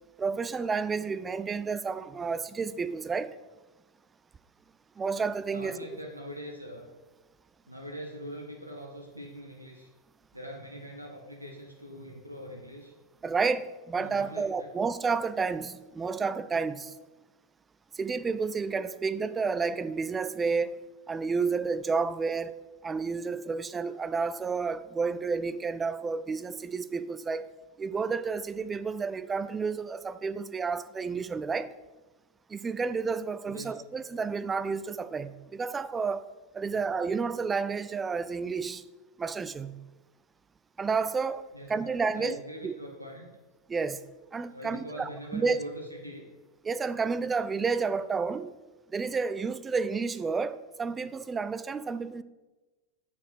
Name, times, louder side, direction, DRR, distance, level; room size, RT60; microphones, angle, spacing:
voice 1, 0.2-3.4 5.0-5.8 13.2-16.9 17.9-22.5 22.8-27.5 27.8-31.7 32.5-36.3 36.5-38.8 39.2-39.8 40.8-41.4 41.7-42.7 43.7-44.0 44.3-45.6 46.6-48.5 48.9-52.2, right 5 dB, 15° right, 0.3 m, -31 dB
voice 2, 5.5-6.9 7.7-9.9 10.3-12.9 14.0-14.7 33.5-33.7 36.7-36.8 41.5-43.4 44.5-46.2, equal, 90° right, 0.9 m, -43 dB
6.8 x 5.0 x 5.7 m
figure-of-eight pair, 90°, 0 cm